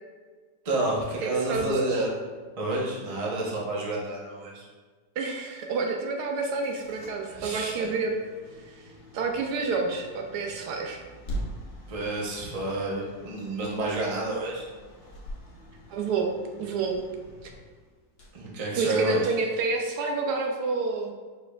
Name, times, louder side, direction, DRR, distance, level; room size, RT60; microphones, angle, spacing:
voice 1, 0.6-2.1 2.6-4.7 7.3-7.9 11.9-14.7 18.3-19.3, right 2 dB, 35° right, -3 dB, 0.6 m, -29 dB
voice 2, 1.2-2.0 5.2-8.1 9.1-11.0 15.9-16.3 16.6-17.0 17.4-17.5 18.8-21.1, right 4 dB, 75° right, 2 dB, 1.1 m, -28 dB
sound 1, 6.3-19.3, equal, 45° left, 1.0 m, -44 dB
5.0 x 4.4 x 2.3 m, 1.5 s
omnidirectional pair, 1.8 m